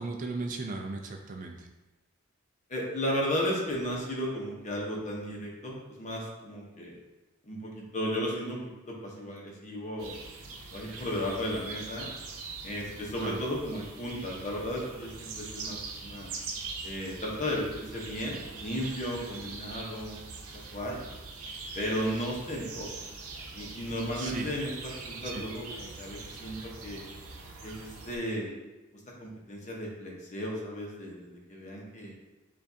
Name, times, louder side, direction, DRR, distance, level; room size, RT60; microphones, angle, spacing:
voice 1, 0.0-1.7 13.2-13.4 24.2-24.5 25.2-25.4, right 3 dB, 40° right, 3 dB, 0.4 m, -36 dB
voice 2, 2.7-6.9 7.4-10.1 10.7-12.1 12.6-16.3 16.8-20.2 20.7-21.0 21.7-22.9 23.5-27.0 27.6-28.5 29.2-32.1, equal, 35° left, -2 dB, 0.9 m, -34 dB
sound 1, 10.0-28.2, right 4 dB, 85° right, 0.7 m, -43 dB
6.9 x 2.5 x 2.7 m, 1.1 s
head